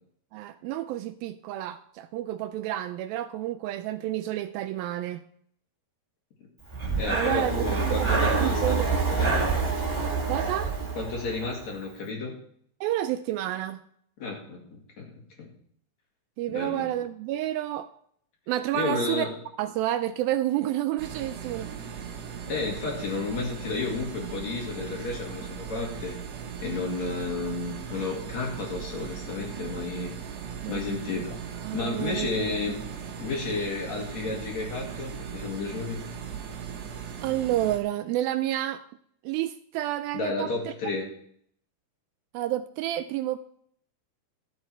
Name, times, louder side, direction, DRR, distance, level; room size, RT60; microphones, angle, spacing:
voice 1, 0.3-5.2 7.1-8.9 10.3-10.7 12.8-13.8 16.4-17.9 18.5-19.3 19.6-21.7 30.6-31.2 31.6-32.7 37.2-38.8 39.2-40.5 42.3-43.4, right 13 dB, 80° right, 10 dB, 2.2 m, -30 dB
Breathing, 6.7-11.6, right 4 dB, 15° right, 1.2 m, -27 dB
voice 2, 7.0-9.4 11.0-12.3 14.2-15.1 15.4-15.5 16.5-16.9 18.7-19.3 22.5-26.1 26.6-30.1 30.7-31.3 31.7-32.8 33.2-36.0 40.1-41.1, left 3 dB, 50° left, 0 dB, 3.0 m, -32 dB
sound 1, 21.0-37.8, right 7 dB, 60° right, 1.8 m, -38 dB
13.0 x 7.9 x 4.5 m, 0.65 s
omnidirectional pair, 4.5 m